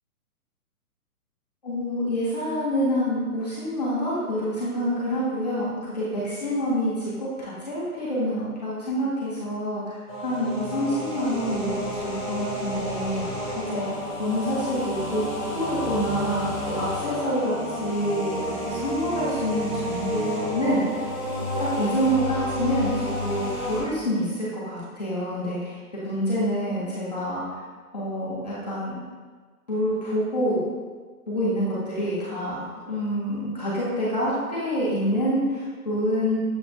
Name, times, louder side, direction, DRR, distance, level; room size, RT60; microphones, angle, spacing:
voice 1, 1.6-10.0 10.2-13.2 13.5-13.9 14.2-15.3 15.5-17.5 17.8-21.0 21.6-27.6 27.9-28.9 29.7-30.6 31.3-32.6 32.9-36.4, equal, 25° left, -11 dB, 0.7 m, -27 dB
sound 1, 10.1-23.8, equal, 25° right, 0.8 m, -31 dB
6.8 x 2.5 x 2.5 m, 1.5 s
hypercardioid pair, 180°, 45 cm